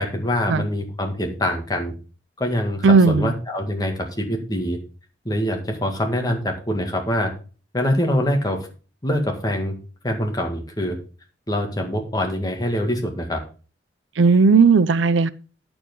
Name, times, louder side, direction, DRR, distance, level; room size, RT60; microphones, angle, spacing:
voice 1, 0.0-1.9 2.4-4.8 5.3-7.3 7.7-8.7 9.0-9.7 10.0-11.0 11.5-13.4, equal, 20° left, 1.8 m, -24 dB
voice 2, 2.8-3.3 14.2-15.3, right 4 dB, 85° right, 0.5 m, -15 dB
9.0 x 7.0 x 5.3 m
head